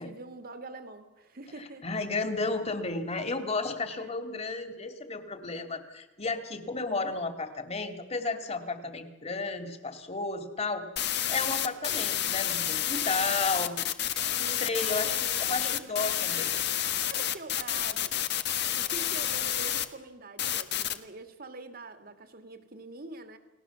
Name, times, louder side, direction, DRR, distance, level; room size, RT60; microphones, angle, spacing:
voice 1, 0.0-1.8 3.9-4.2 14.4-16.1 17.0-18.2 18.8-23.4, right 2 dB, 50° right, 7 dB, 2.5 m, -45 dB
voice 2, 1.8-10.8 11.3-13.9 14.4-16.5, left 3 dB, 35° left, 7 dB, 2.6 m, -33 dB
sound 1, 11.0-19.8 20.4-21.0, left 11 dB, 60° left, 1.4 m, -29 dB
30.0 x 19.5 x 7.2 m, 1.1 s
head